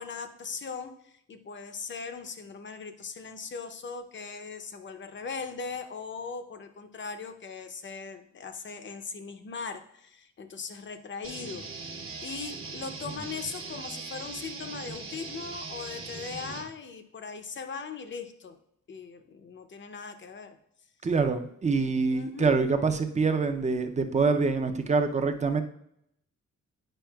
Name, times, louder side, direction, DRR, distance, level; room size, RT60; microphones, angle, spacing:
voice 1, 0.0-11.6 12.2-18.6 18.9-20.6 22.1-22.6, left 5 dB, 40° left, 8 dB, 0.6 m, -39 dB
sound 1, 11.2-16.6, right 4 dB, 50° right, 0.9 m, -40 dB
voice 2, 21.0-25.6, right 4 dB, 25° right, 7 dB, 0.5 m, -25 dB
8.9 x 5.2 x 2.3 m, 0.75 s
wide cardioid pair, 165°, 29 cm